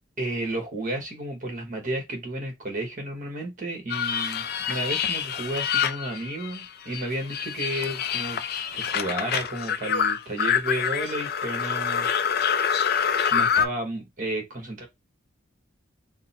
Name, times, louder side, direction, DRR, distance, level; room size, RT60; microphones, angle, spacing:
voice 1, 0.2-8.4 8.7-12.1 13.3-14.9, right 1 dB, 40° right, 1.3 m, -32 dB
sound 1, 3.9-6.7 6.9-13.7, left 7 dB, 50° left, 0.4 m, -26 dB
3.7 x 2.1 x 4.1 m
head